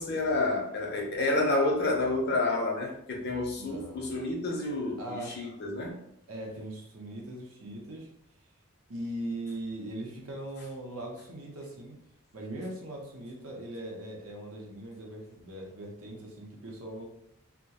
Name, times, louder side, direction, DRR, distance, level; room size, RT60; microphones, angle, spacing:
voice 1, 0.0-6.0, left 2 dB, 45° left, 0 dB, 0.5 m, -29 dB
voice 2, 3.6-4.2 5.0-5.3 6.3-8.1 8.9-12.0 12.3-17.0, right 1 dB, 75° right, -1 dB, 0.7 m, -40 dB
2.3 x 2.1 x 2.8 m, 0.75 s
head